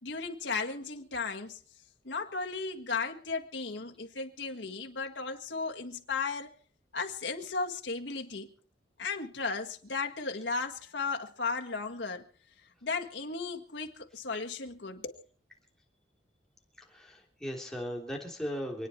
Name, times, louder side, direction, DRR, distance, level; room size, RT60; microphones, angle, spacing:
voice 1, 0.0-1.6 2.0-6.5 6.9-8.5 9.0-12.2 12.8-15.2, left 4 dB, 90° left, 1.8 m, -35 dB
voice 2, 16.8-18.9, equal, 5° left, 3.2 m, -37 dB
27.0 x 9.7 x 4.5 m
head